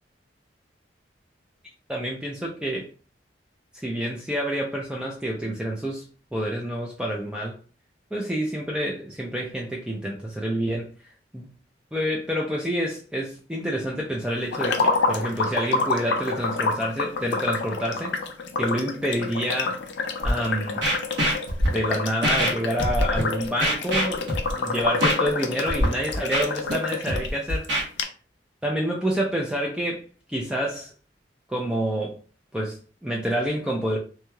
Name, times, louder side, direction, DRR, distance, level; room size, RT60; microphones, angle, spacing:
voice 1, 1.9-2.9 3.8-7.6 8.1-10.9 11.3-11.5 11.9-18.1 18.6-19.8 20.2-20.9 21.7-24.3 24.6-27.7 28.6-30.9 31.5-32.2 32.5-34.0, equal, 5° right, 0.4 m, -28 dB
sound 1, 14.5-27.3 27.6-27.7 28.0-28.1, left 4 dB, 75° left, 0.4 m, -28 dB
Scratching (performance technique), 20.2-20.3 20.8-21.7 22.2-22.5 22.8-23.2 23.6-24.5 25.0-25.1 25.7-25.9 26.1-26.7 27.1-27.8, equal, 90° right, 1.2 m, -23 dB
3.0 x 2.6 x 2.2 m
head